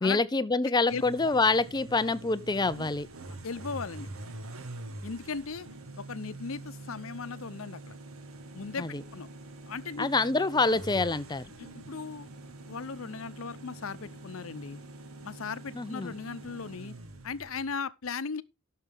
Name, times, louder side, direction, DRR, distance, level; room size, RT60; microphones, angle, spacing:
voice 1, 0.0-3.1 8.8-9.0 10.0-11.5 15.8-16.1, left 3 dB, 20° left, 0.5 m, -26 dB
sound 1, 0.9-17.7, right 2 dB, 90° right, 1.6 m, -45 dB
voice 2, 3.4-4.1 5.0-5.7 6.0-8.0 8.5-9.3 9.6-10.1 11.6-12.3 12.7-14.8 15.2-16.9 17.2-18.4, left 5 dB, 80° left, 0.8 m, -37 dB
16.0 x 6.7 x 3.6 m
head